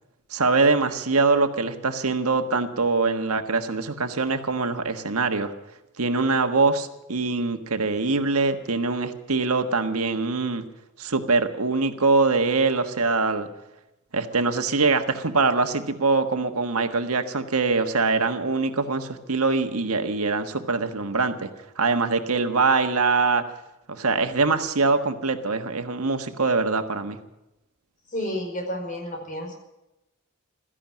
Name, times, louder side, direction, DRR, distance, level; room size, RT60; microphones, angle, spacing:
voice 1, 0.3-5.5 6.0-10.6 11.0-13.5 14.1-21.5 21.8-23.4 23.9-27.2, right 3 dB, 85° right, 7 dB, 1.5 m, -23 dB
voice 2, 28.1-29.5, equal, 40° left, 2 dB, 5.0 m, -31 dB
16.5 x 14.0 x 6.3 m, 0.94 s
head